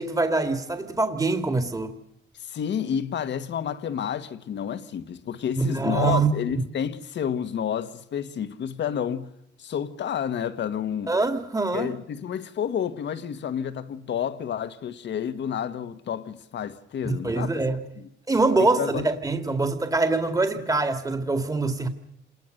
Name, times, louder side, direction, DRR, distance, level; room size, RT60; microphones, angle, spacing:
voice 1, 0.0-1.9 5.6-6.7 11.1-11.9 17.0-17.8 18.3-21.9, right 3 dB, 15° right, 2.2 m, -24 dB
voice 2, 2.3-9.3 9.6-11.1 11.7-17.5 18.6-19.1, left 8 dB, 65° left, 1.5 m, -30 dB
26.5 x 20.5 x 6.6 m
cardioid pair, 90°, 20 cm